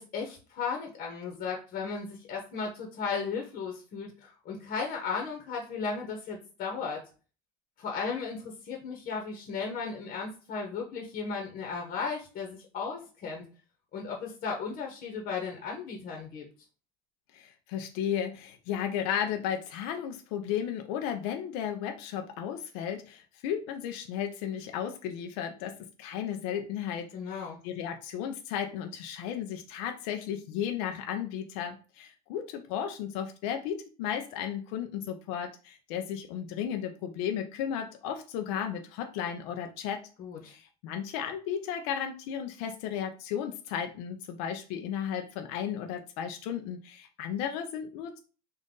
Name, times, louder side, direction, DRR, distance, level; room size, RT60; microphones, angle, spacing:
voice 1, 0.0-7.0 7.8-13.4 13.9-16.4 27.1-27.6 40.2-40.5, left 5 dB, 50° left, 1 dB, 1.1 m, -35 dB
voice 2, 17.3-40.0 40.4-48.2, left 9 dB, 80° left, 5 dB, 0.5 m, -34 dB
3.9 x 2.5 x 3.7 m, 0.36 s
supercardioid pair, 105°, 18 cm